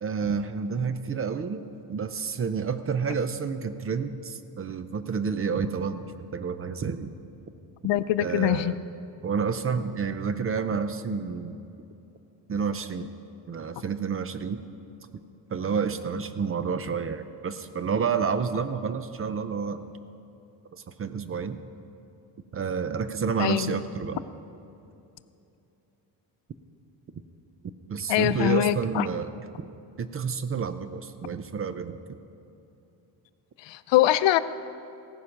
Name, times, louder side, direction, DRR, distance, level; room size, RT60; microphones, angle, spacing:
voice 1, 0.0-7.1 8.2-8.8 9.2-11.6 12.5-13.1 13.5-14.6 15.5-19.9 20.7-21.6 22.5-24.2 27.9-29.3 30.0-32.0, right 6 dB, 30° right, 11 dB, 0.5 m, -29 dB
voice 2, 7.8-8.7 23.4-23.8 28.1-29.1 33.6-34.4, left 13 dB, 80° left, 13 dB, 0.6 m, -23 dB
16.0 x 9.7 x 5.8 m, 2.8 s
cardioid pair, 150°, 43 cm